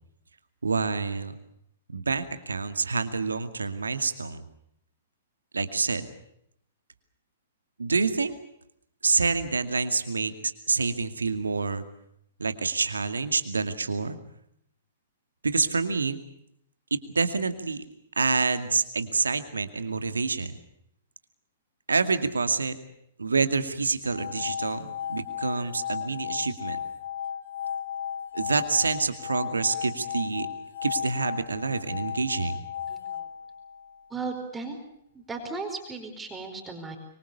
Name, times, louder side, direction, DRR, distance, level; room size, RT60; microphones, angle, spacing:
voice 1, 0.6-1.4 1.9-4.4 5.5-6.1 7.8-8.4 9.0-11.8 12.4-14.2 15.4-16.2 16.9-17.8 18.2-20.6 21.9-22.8 23.2-26.8 28.3-30.5 30.8-32.7, right 4 dB, 80° right, 9 dB, 2.3 m, -27 dB
sound 1, 24.0-34.2, left 9 dB, 65° left, 1.8 m, -35 dB
voice 2, 32.9-33.3 34.1-34.8 35.1-37.0, right 4 dB, 10° right, 4 dB, 4.7 m, -36 dB
25.5 x 24.0 x 6.9 m, 0.74 s
figure-of-eight pair, 115°, 0 cm